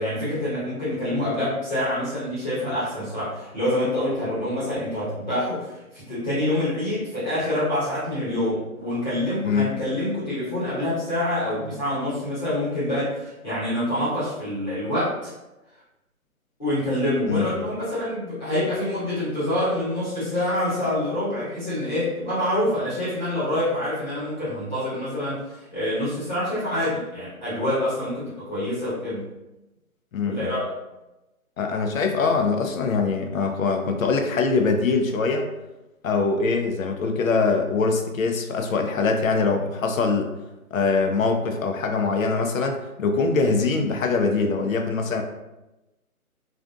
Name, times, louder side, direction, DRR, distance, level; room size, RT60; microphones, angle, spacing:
voice 1, 0.0-15.3 16.6-29.2 30.3-30.7, left 1 dB, 30° left, -12 dB, 1.0 m, -26 dB
voice 2, 17.3-17.6 30.1-30.6 31.6-35.5 36.0-40.3 40.7-45.2, left 4 dB, 65° left, 4 dB, 0.5 m, -23 dB
2.5 x 2.4 x 2.3 m, 1.0 s
hypercardioid pair, 175°, 44 cm